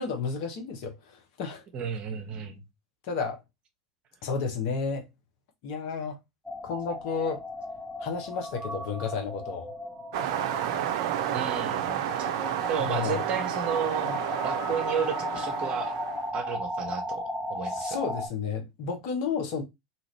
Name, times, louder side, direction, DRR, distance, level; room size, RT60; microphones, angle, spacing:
voice 1, 0.0-1.6 3.0-3.4 4.2-5.1 5.6-6.2 6.6-7.4 8.0-9.7 12.8-13.2 14.0-14.2 17.7-19.6, left 5 dB, 55° left, 1.0 m, -32 dB
voice 2, 1.7-2.6 11.3-12.3 12.7-14.2 14.4-16.0 16.3-18.0, right 7 dB, 35° right, 0.8 m, -33 dB
sound 1, 6.4-18.3, left 1 dB, 5° left, 1.0 m, -36 dB
sound 2, 10.1-16.3, right 10 dB, 55° right, 0.4 m, -31 dB
2.8 x 2.5 x 3.2 m
figure-of-eight pair, 85°, 3 cm